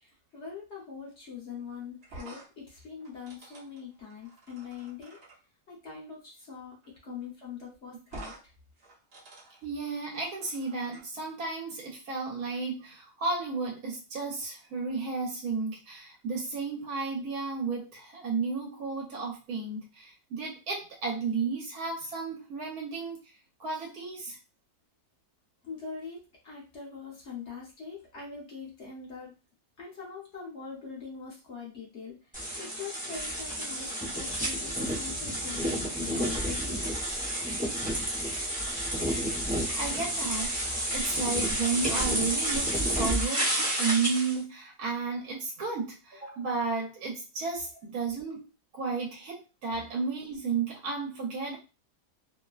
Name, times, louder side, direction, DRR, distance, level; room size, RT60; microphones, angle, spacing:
voice 1, 0.0-5.2 5.7-6.8 7.0-8.3 25.6-29.3 29.8-32.2 32.6-36.8, left 6 dB, 50° left, -3 dB, 1.0 m, -42 dB
sound 1, 2.0-5.4 6.8-7.0 7.2-7.3 8.1-8.4 8.8-11.0, right 2 dB, 50° right, 0.8 m, -49 dB
voice 2, 9.6-23.2 23.6-24.4 39.8-48.5 48.7-51.6, right 4 dB, 75° right, -1 dB, 1.2 m, -33 dB
sound 2, 32.3-44.4, equal, 10° right, 0.6 m, -30 dB
2.9 x 2.1 x 2.3 m, 0.31 s
omnidirectional pair, 1.6 m